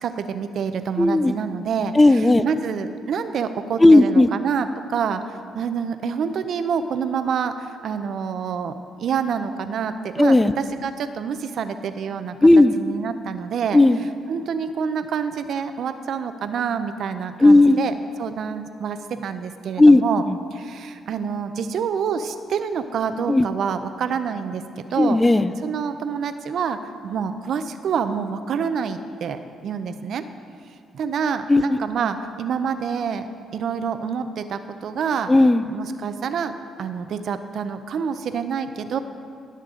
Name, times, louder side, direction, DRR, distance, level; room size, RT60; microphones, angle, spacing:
voice 1, 0.0-12.4 12.8-13.8 14.3-17.9 18.2-20.2 20.5-24.6 24.9-25.2 25.6-26.8 27.0-30.2 30.9-33.3 33.5-35.3 35.7-39.0, right 6 dB, 65° right, 10 dB, 0.6 m, -27 dB
voice 2, 1.0-1.3 1.9-2.4 3.8-4.3 10.2-10.5 12.4-12.7 13.7-14.0 17.4-17.8 19.8-20.0 20.3-20.4 23.3-23.5 25.0-25.5 31.5-31.8 35.3-35.6, left 2 dB, 15° left, 13 dB, 0.4 m, -14 dB
19.0 x 6.7 x 3.8 m, 2.3 s
cardioid pair, 90°, 0 cm